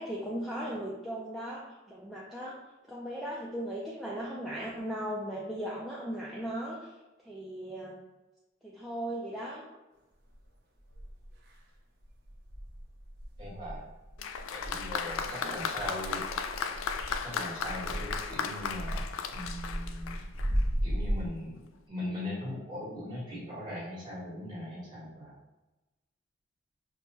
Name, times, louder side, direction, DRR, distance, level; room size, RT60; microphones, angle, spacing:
voice 1, 0.0-2.6 2.9-6.9 7.2-8.0 8.6-9.6 15.3-15.6, right 1 dB, ahead, -6 dB, 0.4 m, -37 dB
sound 1, 10.3-10.4 10.9-11.6 12.0-21.3, equal, 55° right, 0.7 m, -36 dB
voice 2, 13.4-13.8 14.5-16.3 17.2-20.2 20.8-21.6 21.9-25.3, left 1 dB, 25° right, -7 dB, 1.3 m, -40 dB
Applause, 14.2-20.7 21.6-21.7, left 6 dB, 85° left, 0.3 m, -36 dB
4.8 x 2.1 x 2.9 m, 1.1 s
head